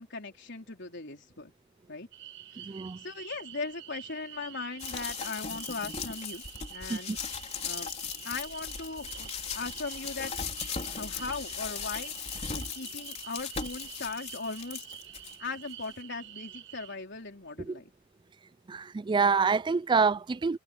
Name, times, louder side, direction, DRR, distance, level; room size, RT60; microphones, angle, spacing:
voice 1, 0.0-1.5 1.9-2.1 3.0-6.4 6.7-7.2 7.6-7.9 8.2-10.3 10.8-12.1 12.5-14.9 15.4-17.9, left 4 dB, 60° left, 4.4 m, -39 dB
sound 1, 2.1-17.0, right 12 dB, 65° right, 6.5 m, -47 dB
voice 2, 2.6-3.0 6.9-7.2 17.7-17.8 18.7-20.6, right 5 dB, 20° right, 0.3 m, -27 dB
sound 2, 4.8-15.4 15.8-15.9, left 6 dB, 35° left, 3.7 m, -38 dB
head